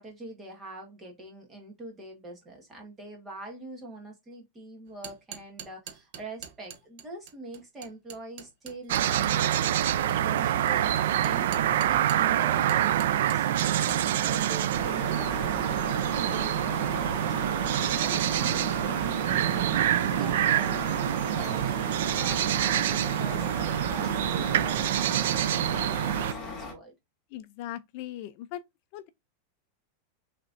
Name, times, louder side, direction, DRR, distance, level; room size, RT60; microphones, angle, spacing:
voice 1, 0.0-26.9, right 2 dB, 15° right, 1.6 m, -44 dB
sound 1, 4.9-12.3 12.7-14.0, right 9 dB, 55° right, 0.9 m, -44 dB
sound 2, 8.9-26.3, right 11 dB, 75° right, 0.4 m, -26 dB
Truck, 14.7-26.7, left 3 dB, 10° left, 2.4 m, -38 dB
voice 2, 27.3-28.6 28.9-29.1, left 13 dB, 50° left, 0.4 m, -39 dB
5.8 x 3.3 x 2.5 m
supercardioid pair, 160°, 0 cm